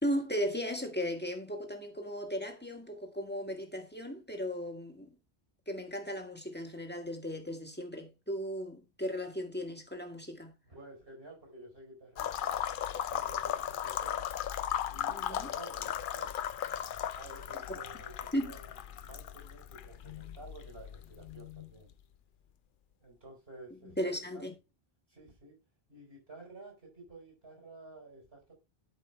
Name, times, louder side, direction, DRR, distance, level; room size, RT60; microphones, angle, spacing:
voice 1, 0.0-5.1 5.7-10.6 15.1-15.5 17.7-17.8 18.3-18.5 24.0-24.5, equal, 10° left, 1.6 m, -36 dB
voice 2, 10.6-12.5 13.1-14.2 14.8-16.3 17.1-18.7 19.0-21.9 23.0-24.5 25.1-25.6 25.9-28.6, right 2 dB, 75° right, 4.7 m, -52 dB
sound 1, 12.2-21.9, left 10 dB, 60° left, 0.7 m, -37 dB
12.0 x 5.2 x 3.3 m
omnidirectional pair, 1.1 m